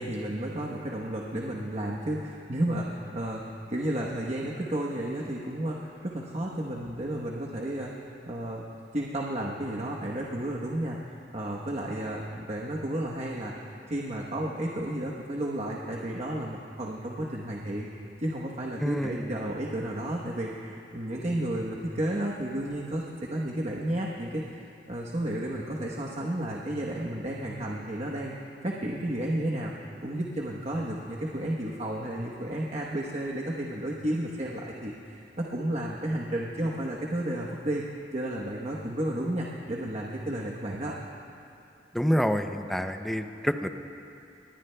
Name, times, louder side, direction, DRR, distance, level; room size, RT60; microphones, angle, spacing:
voice 1, 0.0-7.9 8.3-8.6 8.9-11.0 11.3-17.9 18.2-24.5 24.9-29.7 30.0-37.8 38.1-40.9, right 1 dB, 40° right, -2 dB, 1.0 m, -32 dB
voice 2, 18.8-19.3 41.9-43.7, equal, ahead, 7 dB, 0.5 m, -27 dB
25.0 x 20.5 x 2.2 m, 2.7 s
head